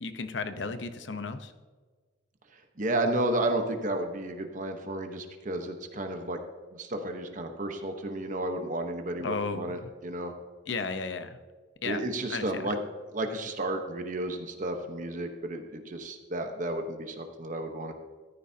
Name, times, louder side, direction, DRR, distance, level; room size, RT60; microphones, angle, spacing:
voice 1, 0.0-1.5 9.2-9.9 10.7-11.4 11.8-12.0 12.3-12.7, left 4 dB, 70° left, 9 dB, 0.9 m, -34 dB
voice 2, 2.8-6.4 6.7-10.3 11.8-12.8 13.1-17.9, right 1 dB, 45° right, 5 dB, 1.1 m, -32 dB
14.5 x 14.0 x 2.8 m, 1.4 s
head